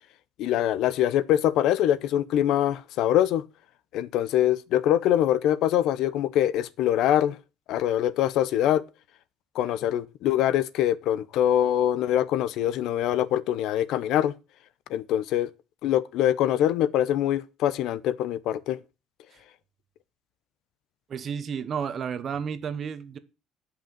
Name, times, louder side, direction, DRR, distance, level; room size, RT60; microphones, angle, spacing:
voice 1, 0.4-3.4 3.9-7.4 7.7-8.8 9.5-14.3 14.9-15.5 15.8-18.8, left 11 dB, 70° left, 0.8 m, -24 dB
voice 2, 21.1-23.2, right 7 dB, 40° right, 1.1 m, -32 dB
10.5 x 5.8 x 7.4 m
cardioid pair, 145°, 0 cm